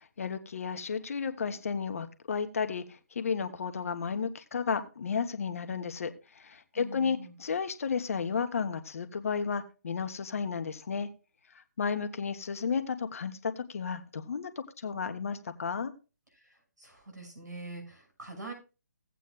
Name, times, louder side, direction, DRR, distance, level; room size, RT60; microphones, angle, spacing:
voice 1, 0.2-11.1 11.8-15.9, left 6 dB, 50° left, 9 dB, 1.1 m, -33 dB
voice 2, 6.7-7.3 16.8-18.5, right 2 dB, 75° right, 3 dB, 6.2 m, -43 dB
17.0 x 8.3 x 2.4 m, 0.31 s
figure-of-eight pair, 140°, 9 cm